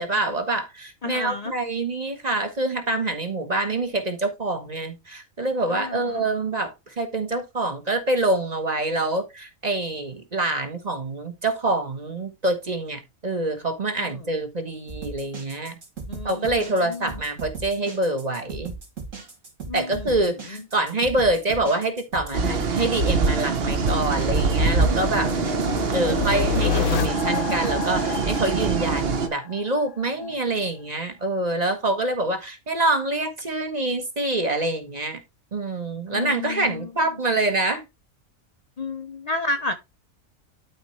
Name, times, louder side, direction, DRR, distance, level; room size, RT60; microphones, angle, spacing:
voice 1, 0.0-15.8 16.2-18.7 19.7-25.3 25.9-35.2 35.5-37.8, right 2 dB, 30° right, 1.3 m, -26 dB
voice 2, 1.0-1.5 5.7-6.2 14.0-14.2 16.1-17.1 19.7-20.1 30.2-30.3 36.1-36.9 38.8-39.7, left 2 dB, 40° left, 0.6 m, -31 dB
sound 1, 14.9-28.7, right 4 dB, 65° right, 3.1 m, -37 dB
sound 2, 22.3-29.3, right 4 dB, 50° right, 1.1 m, -24 dB
sound 3, 23.1-29.9, left 10 dB, 65° left, 1.0 m, -30 dB
12.5 x 4.1 x 3.2 m
omnidirectional pair, 1.4 m